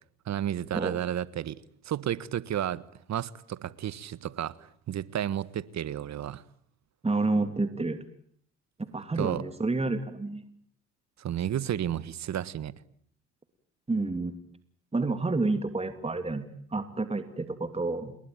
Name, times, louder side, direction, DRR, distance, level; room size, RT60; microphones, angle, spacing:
voice 1, 0.2-1.6 1.8-2.8 3.1-6.4 9.2-9.4 11.2-12.7, right 11 dB, 50° right, 1.5 m, -32 dB
voice 2, 7.0-8.1 8.8-10.4 13.9-14.3 14.9-18.2, right 3 dB, 15° right, 2.7 m, -29 dB
29.0 x 22.0 x 9.1 m
hypercardioid pair, 65°, 35 cm